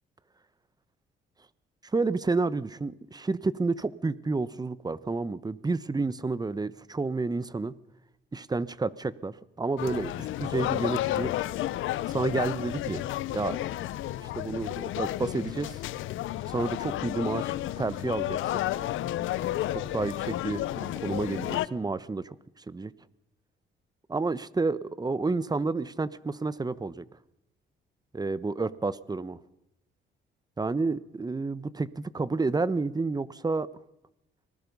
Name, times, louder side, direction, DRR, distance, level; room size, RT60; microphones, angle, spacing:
voice 1, 1.9-7.7 8.3-11.3 12.1-13.0 13.3-13.6 14.3-15.8 16.5-18.6 19.7-22.3 22.7-22.9 24.1-27.0 28.1-29.4 30.6-33.7, right 3 dB, 20° right, 17 dB, 1.0 m, -30 dB
sound 1, 9.8-21.7, left 14 dB, 85° left, 0.8 m, -32 dB
25.5 x 19.0 x 5.4 m, 0.84 s
cardioid pair, 90°, 20 cm